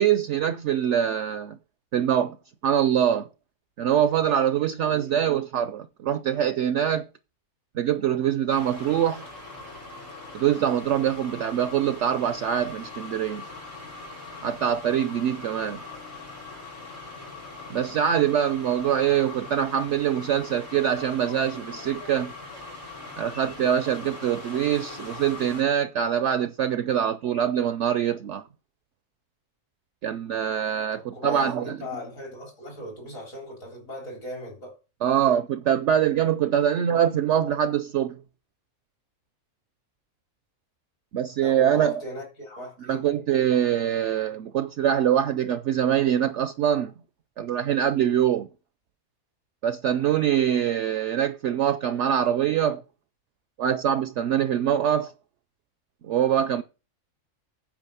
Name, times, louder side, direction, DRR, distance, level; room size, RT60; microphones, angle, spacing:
voice 1, 0.0-1.6 1.9-2.4 2.6-3.3 3.8-7.1 7.7-9.2 10.3-13.4 14.4-15.8 17.7-22.3 23.2-28.4 30.0-31.7 35.0-38.2 41.1-42.0 42.9-46.9 47.4-48.5 49.6-52.8 53.6-55.1 56.0-56.6, right 9 dB, 65° right, 0.8 m, -24 dB
voice 2, 4.8-5.2 30.9-34.8 41.4-43.1, left 1 dB, 65° left, 4.0 m, -38 dB
sound 1, 8.5-25.6, left 3 dB, 90° left, 5.6 m, -41 dB
9.0 x 5.0 x 6.8 m
omnidirectional pair, 1.5 m